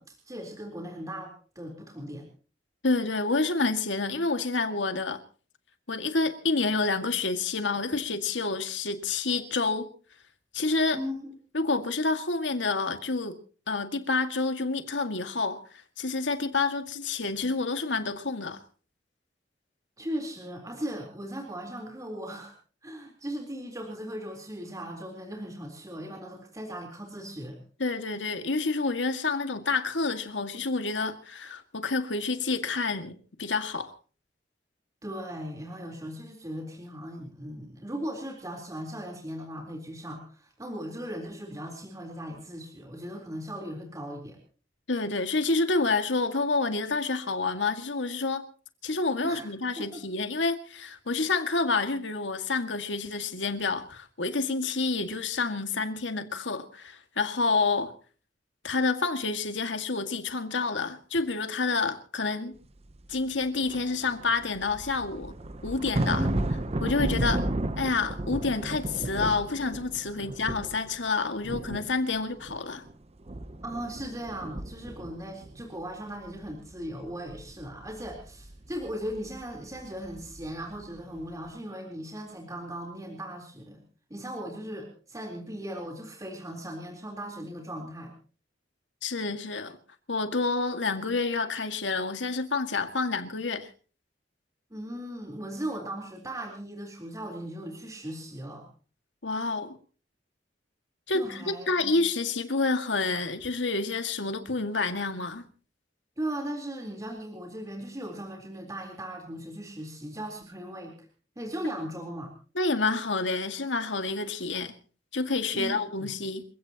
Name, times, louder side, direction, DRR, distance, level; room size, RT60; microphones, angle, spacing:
voice 1, 0.0-2.3 10.9-11.3 20.0-22.5 22.8-27.6 35.0-44.4 49.2-49.5 49.8-50.0 66.1-66.4 67.1-67.4 73.6-83.8 84.1-88.1 94.7-98.7 101.1-102.0 106.2-110.9 111.4-112.3 115.5-116.1, equal, 20° right, 3.9 m, -38 dB
voice 2, 2.8-5.2 5.9-9.9 10.5-11.0 11.5-13.4 13.7-15.6 16.0-18.6 27.8-33.1 33.4-33.9 44.9-48.4 48.8-57.9 58.6-62.5 63.1-65.3 65.6-66.3 66.8-67.4 67.8-72.8 89.0-89.8 90.1-93.7 99.2-99.8 101.1-105.5 112.6-114.7 115.1-116.4, left 3 dB, 85° left, 2.1 m, -28 dB
sound 1, 62.9-63.0 63.4-71.1 71.4-72.9 73.2-75.8 76.1-80.9 81.2-81.5, right 1 dB, 35° right, 0.9 m, -34 dB
29.0 x 16.5 x 3.0 m
head